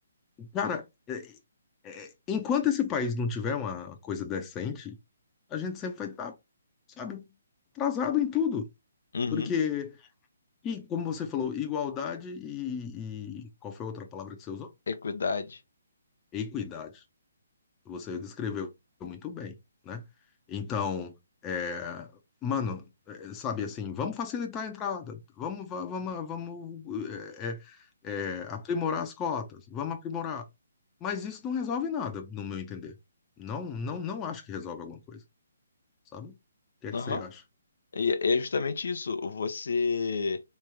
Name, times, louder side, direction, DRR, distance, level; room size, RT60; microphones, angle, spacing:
voice 1, 0.4-1.4 1.8-5.0 5.5-6.3 7.0-7.2 7.7-8.7 9.3-10.0 10.6-14.7 16.3-17.0 17.9-18.7 19.0-19.6 19.8-20.0 20.5-21.1 21.4-22.1 22.4-27.8 28.0-30.5 31.0-32.9 33.4-35.2 36.1-36.4 36.8-37.4, left 7 dB, 15° left, 0.7 m, -33 dB
voice 2, 9.1-9.5 14.9-15.6 36.9-37.2 37.9-40.4, left 4 dB, 75° left, 0.7 m, -29 dB
3.6 x 3.2 x 3.3 m
hypercardioid pair, 155°, 0 cm